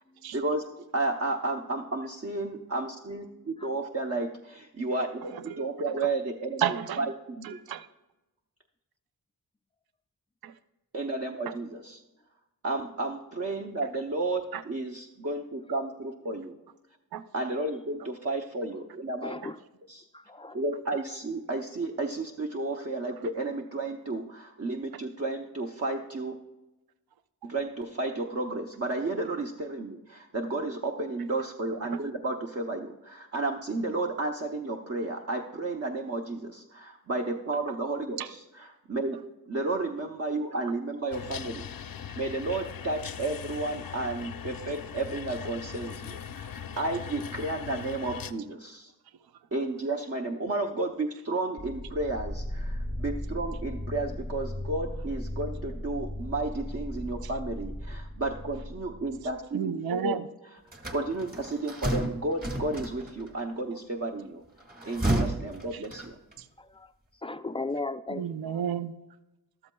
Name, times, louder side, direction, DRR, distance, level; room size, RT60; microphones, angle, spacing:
voice 1, 0.3-0.7 0.9-5.2 5.6-7.6 10.9-12.0 12.6-16.5 17.3-19.4 19.9-20.1 20.5-26.4 27.4-39.2 39.5-48.9 49.5-60.6 60.9-64.4 64.9-66.2, right 2 dB, 40° right, 2 dB, 0.8 m, -32 dB
voice 2, 3.3-3.7 19.2-19.6 20.1-20.6 66.6-66.9 67.2-68.2, left 3 dB, 15° left, 11 dB, 0.3 m, -36 dB
voice 3, 5.2-5.8 6.6-7.0 7.4-7.9 10.4-10.5 11.5-11.6 14.5-14.6 17.1-17.2 19.4-19.5 31.8-32.0 38.2-38.3 57.2-57.3 59.5-60.3 65.7-65.8 66.4-66.5 68.1-68.9, right 9 dB, 70° right, 13 dB, 0.5 m, -32 dB
sound 1, 41.1-48.3, left 7 dB, 65° left, 0.6 m, -40 dB
sound 2, 51.6-59.4, left 1 dB, ahead, 0.7 m, -37 dB
sound 3, 60.7-63.3 64.6-66.4, right 1 dB, 25° right, 1.6 m, -31 dB
14.0 x 12.5 x 2.3 m, 1.0 s
wide cardioid pair, 105°, 38 cm